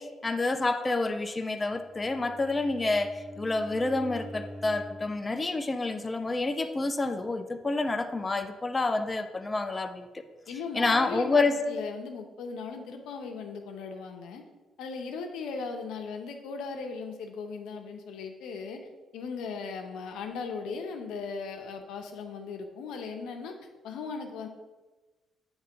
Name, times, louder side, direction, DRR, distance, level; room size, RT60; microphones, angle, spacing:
voice 1, 0.0-10.2 10.7-11.6, left 3 dB, 25° left, 7 dB, 0.5 m, -28 dB
Bowed string instrument, 1.6-5.2, equal, 5° right, 1.6 m, -45 dB
voice 2, 10.5-14.4 14.8-18.8 19.1-23.5 23.8-24.5, left 5 dB, 85° left, 4 dB, 0.8 m, -38 dB
8.1 x 3.2 x 5.3 m, 1.2 s
cardioid pair, 90°, 0 cm